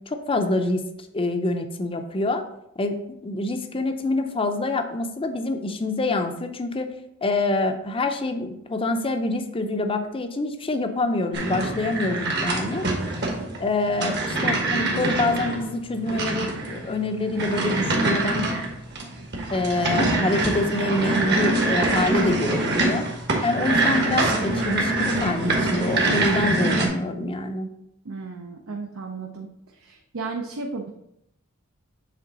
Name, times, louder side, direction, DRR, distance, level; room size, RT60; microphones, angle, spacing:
voice 1, 0.1-0.8 1.1-2.4 2.8-6.9 7.2-12.9 13.6-18.5 19.5-23.1 23.4-27.7, left 2 dB, 25° left, 7 dB, 0.6 m, -26 dB
Office Chair, 11.3-26.9, right 2 dB, 50° right, 1.3 m, -24 dB
voice 2, 28.0-29.5 29.8-30.9, right 4 dB, 70° right, 2 dB, 0.6 m, -34 dB
7.5 x 3.4 x 3.9 m, 0.79 s
head